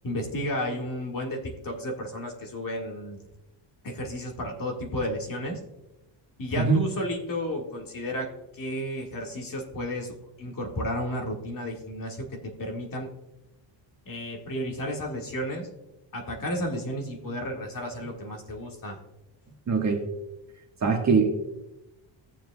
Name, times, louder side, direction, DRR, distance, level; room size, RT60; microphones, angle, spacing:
voice 1, 0.0-3.2 3.8-5.6 6.4-13.1 14.1-15.7 16.1-19.0, equal, 45° left, 1 dB, 1.8 m, -32 dB
voice 2, 19.7-20.0 20.8-21.3, right 5 dB, 35° right, 1 dB, 1.5 m, -22 dB
17.0 x 7.4 x 2.3 m, 0.95 s
cardioid pair, 145°, 47 cm